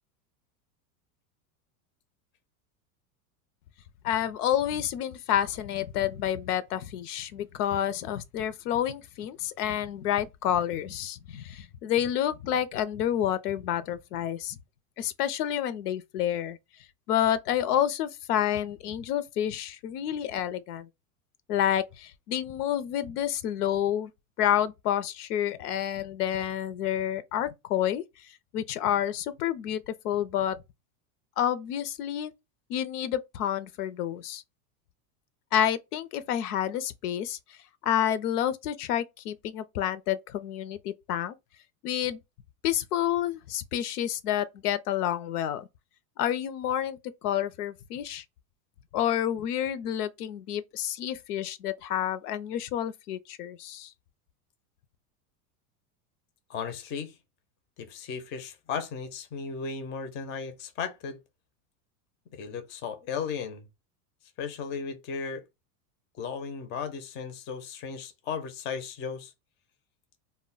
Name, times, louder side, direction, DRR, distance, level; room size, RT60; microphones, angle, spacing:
voice 1, 4.0-14.6 15.0-16.6 17.1-20.9 21.5-24.1 24.4-28.0 28.5-30.6 31.4-32.3 32.7-34.4 35.5-37.4 37.8-41.3 41.8-42.2 42.6-45.7 46.2-48.2 48.9-53.9, left 10 dB, 85° left, 0.6 m, -29 dB
voice 2, 56.5-57.1 57.8-61.2 62.3-63.7 64.4-65.4 66.2-69.3, left 6 dB, 25° left, 0.4 m, -35 dB
2.1 x 2.0 x 3.7 m
supercardioid pair, 125°, 45 cm